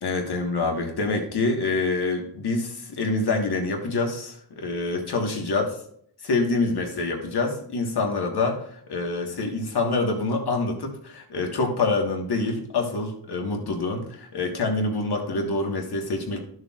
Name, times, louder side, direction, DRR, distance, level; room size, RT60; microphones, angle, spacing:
voice 1, 0.0-5.8 6.2-16.5, left 3 dB, 55° left, 2 dB, 1.5 m, -26 dB
13.0 x 6.4 x 2.4 m, 0.66 s
wide cardioid pair, 165°, 46 cm